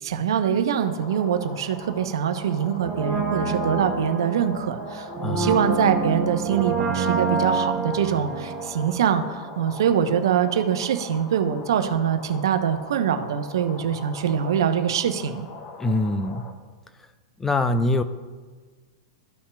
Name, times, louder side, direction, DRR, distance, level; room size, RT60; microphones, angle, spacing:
voice 1, 0.0-15.5, right 8 dB, 70° right, 8 dB, 0.7 m, -24 dB
sound 1, 0.8-16.5, left 4 dB, 45° left, 1.0 m, -41 dB
Brass instrument, 2.8-9.6 9.9-10.0, right 4 dB, 5° right, 2.2 m, -27 dB
voice 2, 5.2-5.5 15.8-16.4 17.4-18.0, left 2 dB, 15° left, 10 dB, 0.5 m, -23 dB
14.0 x 5.6 x 2.3 m, 1.4 s
hypercardioid pair, 105°, 2 cm